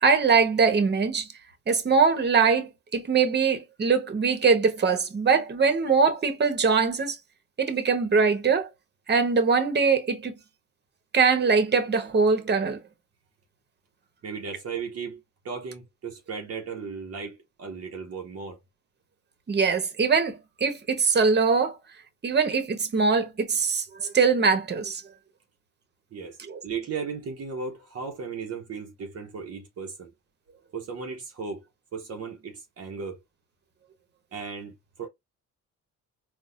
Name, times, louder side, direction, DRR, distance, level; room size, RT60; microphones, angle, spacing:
voice 1, 0.0-1.3 1.7-7.2 7.6-8.7 9.1-10.3 11.1-12.8 19.5-21.8 22.2-25.0 26.4-26.6, right 5 dB, 35° right, 1.1 m, -22 dB
voice 2, 14.2-18.6 26.1-26.4 26.6-30.1 30.7-31.6 31.9-33.2 34.3-35.1, right 5 dB, 50° right, 0.9 m, -36 dB
4.0 x 2.3 x 2.5 m
cardioid pair, 90°, 30 cm